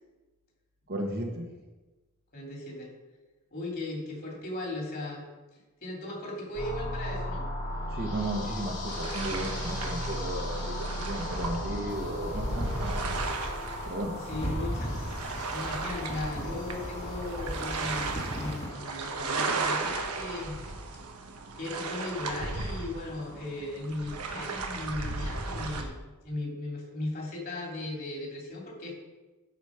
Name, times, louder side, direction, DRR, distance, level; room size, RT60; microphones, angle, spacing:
voice 1, 0.9-1.4 7.9-10.8 11.1-13.2 13.8-14.2, right 1 dB, 45° right, 1 dB, 1.3 m, -34 dB
voice 2, 2.3-2.9 3.5-5.2 5.8-7.5 11.3-11.8 14.3-14.9 15.5-20.6 21.6-28.9, left 2 dB, 45° left, -2 dB, 2.8 m, -37 dB
sound 1, 6.5-20.4, left 1 dB, 80° left, 2.8 m, -37 dB
sound 2, 8.9-25.8, right 3 dB, 85° right, 1.1 m, -35 dB
sound 3, 11.9-18.7, equal, 30° left, 1.6 m, -40 dB
12.0 x 5.0 x 5.1 m, 1.2 s
head